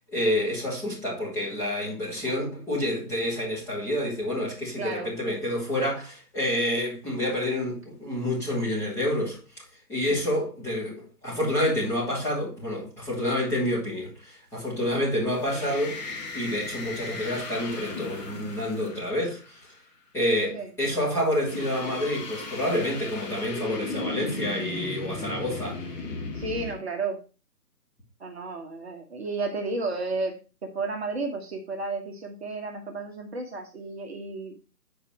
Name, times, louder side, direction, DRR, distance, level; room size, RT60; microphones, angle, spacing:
voice 1, 0.1-9.4 9.9-16.0 16.3-19.6 20.1-25.8, left 1 dB, 5° left, 2.4 m, -28 dB
voice 2, 4.8-5.1 20.5-20.7 26.3-27.2 28.2-30.3 30.7-34.5, right 3 dB, 40° right, 1.4 m, -32 dB
sound 1, 15.3-19.8 21.3-26.7, left 3 dB, 25° left, 1.7 m, -36 dB
8.5 x 4.8 x 4.3 m
figure-of-eight pair, 155°, 47 cm